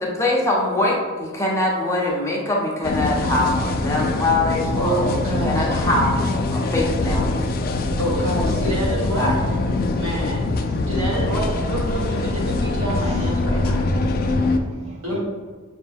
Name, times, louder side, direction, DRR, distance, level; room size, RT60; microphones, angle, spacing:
voice 1, 0.0-6.2 6.5-7.3 9.2-9.3, left 2 dB, 15° left, -3 dB, 0.6 m, -23 dB
sound 1, 2.8-14.6, left 2 dB, 45° left, 0.3 m, -23 dB
voice 2, 4.7-5.7 8.0-9.3 9.9-10.4 10.9-13.8 15.0-15.2, right 1 dB, 80° right, -3 dB, 1.3 m, -27 dB
voice 3, 13.0-15.2, equal, 30° right, -2 dB, 0.4 m, -42 dB
5.9 x 2.2 x 3.4 m, 1.5 s
head